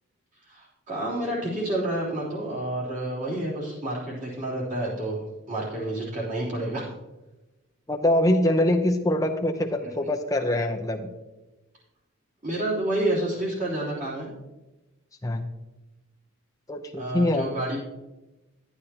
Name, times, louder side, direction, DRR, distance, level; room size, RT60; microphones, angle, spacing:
voice 1, 0.4-6.9 9.8-9.9 12.4-14.3 17.0-17.8, right 1 dB, 35° right, -7 dB, 3.4 m, -29 dB
voice 2, 7.9-11.1 15.2-15.4 16.7-17.5, left 1 dB, 15° left, 3 dB, 0.7 m, -24 dB
11.0 x 9.5 x 2.9 m, 1.1 s
head